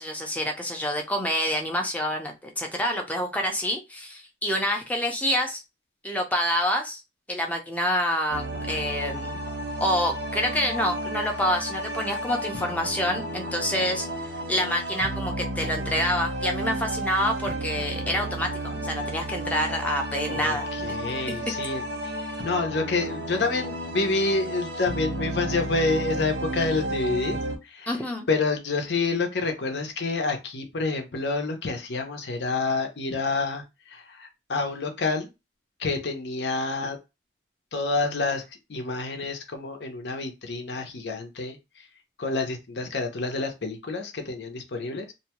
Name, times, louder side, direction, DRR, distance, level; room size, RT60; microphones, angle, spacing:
voice 1, 0.0-5.6 6.0-7.0 7.3-9.4 9.8-14.1 14.5-20.7 21.3-21.4 27.9-28.3, equal, 10° left, 2 dB, 0.5 m, -27 dB
sound 1, 8.3-27.6, right 1 dB, 80° right, 1.0 m, -32 dB
voice 2, 20.3-22.1 22.4-27.4 27.6-27.9 28.3-35.3 35.8-37.0 37.7-38.4 38.7-41.8 42.2-45.1, left 3 dB, 75° left, 5 dB, 0.7 m, -28 dB
2.7 x 2.2 x 2.9 m, 0.24 s
head